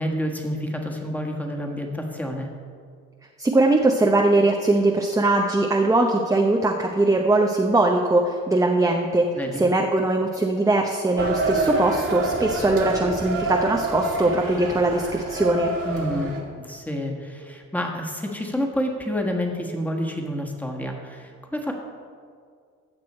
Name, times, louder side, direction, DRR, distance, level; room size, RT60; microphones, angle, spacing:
voice 1, 0.0-2.5 9.3-9.6 15.8-21.7, equal, 5° left, 1 dB, 1.6 m, -29 dB
voice 2, 3.4-9.3 9.6-15.7, right 2 dB, 10° right, 2 dB, 0.7 m, -21 dB
sound 1, 11.2-16.4, right 2 dB, 50° right, 1.8 m, -27 dB
15.0 x 6.2 x 4.3 m, 2.1 s
cardioid pair, 90°, 30 cm